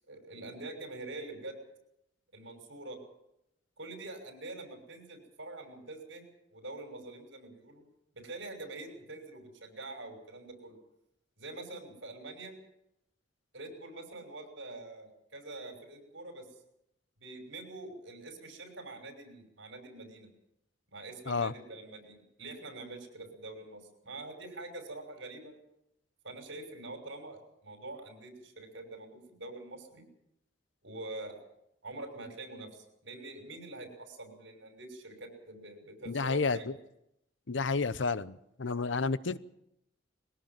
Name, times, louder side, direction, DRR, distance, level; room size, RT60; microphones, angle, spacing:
voice 1, 0.0-1.6 2.3-3.0 3.8-6.2 6.5-7.8 8.1-10.8 11.4-12.6 13.5-16.5 17.2-20.3 20.9-25.6 26.2-30.0 30.8-31.4 31.8-36.7, right 2 dB, 80° right, 5 dB, 6.2 m, -45 dB
voice 2, 36.1-36.7 37.5-39.4, left 4 dB, 75° left, 16 dB, 0.8 m, -31 dB
21.5 x 17.5 x 7.6 m, 0.79 s
head